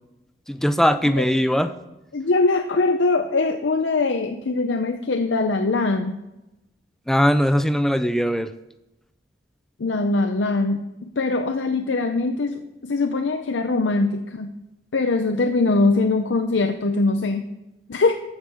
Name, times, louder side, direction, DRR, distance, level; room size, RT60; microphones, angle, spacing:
voice 1, 0.5-1.7 7.1-8.5, equal, ahead, 11 dB, 0.5 m, -20 dB
voice 2, 2.1-6.2 9.8-14.5 14.9-17.5 17.9-18.1, left 3 dB, 90° left, 7 dB, 0.6 m, -22 dB
14.0 x 5.4 x 6.4 m, 0.96 s
head